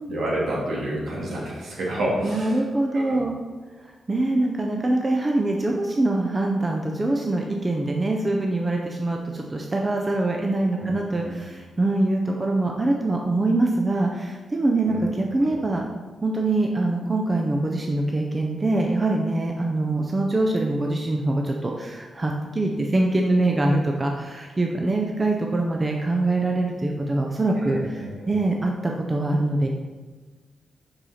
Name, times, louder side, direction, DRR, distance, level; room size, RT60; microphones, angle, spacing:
voice 1, 0.1-2.6 2.9-3.2 10.8-10.9 11.2-11.3 14.9-15.0 27.6-28.3, right 1 dB, 75° right, -4 dB, 2.1 m, -29 dB
voice 2, 2.2-3.4 4.1-15.8 16.2-28.0 28.3-29.7, right 2 dB, 30° right, 1 dB, 0.6 m, -24 dB
5.7 x 5.3 x 4.2 m, 1.3 s
cardioid pair, 75°, 0 cm